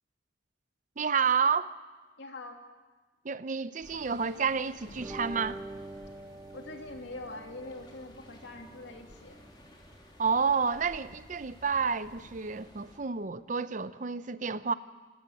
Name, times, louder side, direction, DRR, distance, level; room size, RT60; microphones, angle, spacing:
voice 1, 1.0-1.8 3.2-5.6 10.2-14.7, right 5 dB, 40° right, 14 dB, 0.6 m, -30 dB
voice 2, 2.2-2.6 6.5-9.4, left 2 dB, 70° left, 3 dB, 2.8 m, -43 dB
sound 1, 3.8-13.0, equal, 25° left, 3.1 m, -54 dB
sound 2, 4.9-12.6, right 1 dB, 15° right, 1.1 m, -48 dB
26.5 x 13.0 x 9.2 m, 1.3 s
head